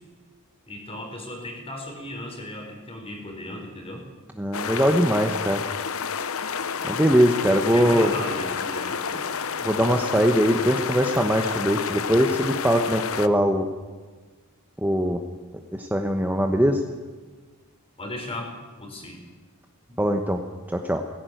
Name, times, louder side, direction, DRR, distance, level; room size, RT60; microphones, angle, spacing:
voice 1, 0.7-4.0 7.5-9.3 18.0-19.2 19.9-20.0, left 1 dB, 25° left, 2 dB, 4.3 m, -36 dB
voice 2, 4.4-5.6 6.9-8.2 9.6-13.7 14.8-15.2 15.8-16.8 20.0-20.4 20.7-21.0, equal, 10° right, 4 dB, 1.1 m, -21 dB
sound 1, 4.5-13.3, left 6 dB, 65° left, 0.8 m, -30 dB
17.5 x 16.0 x 9.3 m, 1.4 s
head